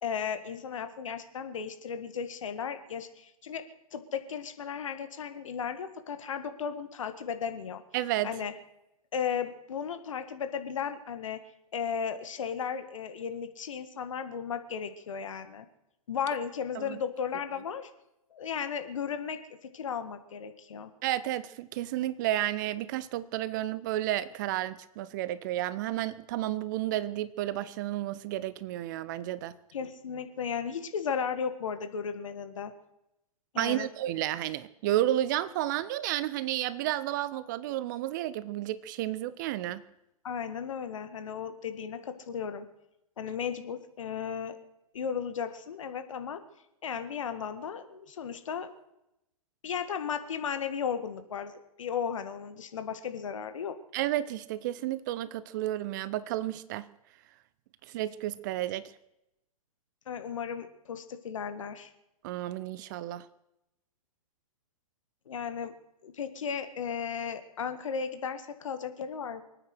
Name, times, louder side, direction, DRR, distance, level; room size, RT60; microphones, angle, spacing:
voice 1, 0.0-3.6 3.9-7.8 8.2-8.5 9.1-11.4 11.7-15.7 16.1-17.9 18.3-20.9 29.7-32.7 33.5-33.9 40.2-42.7 43.2-44.6 44.9-46.4 46.8-48.7 49.6-53.8 60.1-61.9 65.3-65.7 66.0-69.4, left 7 dB, 55° left, 1.7 m, -35 dB
voice 2, 7.9-8.3 16.7-17.0 21.0-29.6 33.6-39.8 53.9-56.9 57.9-58.9 62.2-63.3, right 14 dB, 30° right, 0.6 m, -31 dB
24.5 x 9.1 x 6.4 m
figure-of-eight pair, 115°, 19 cm